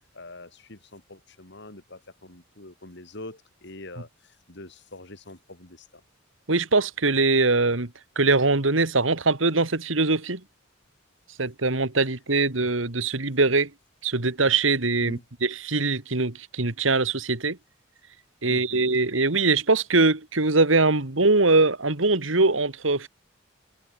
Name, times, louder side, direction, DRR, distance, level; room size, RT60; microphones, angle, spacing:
voice 1, 0.1-6.0 15.0-15.2 18.5-18.8, left 2 dB, 65° left, 4.6 m, -44 dB
voice 2, 6.5-7.9 8.2-10.4 11.4-13.7 14.0-17.6 18.4-23.1, right 3 dB, 80° right, 2.2 m, -22 dB
head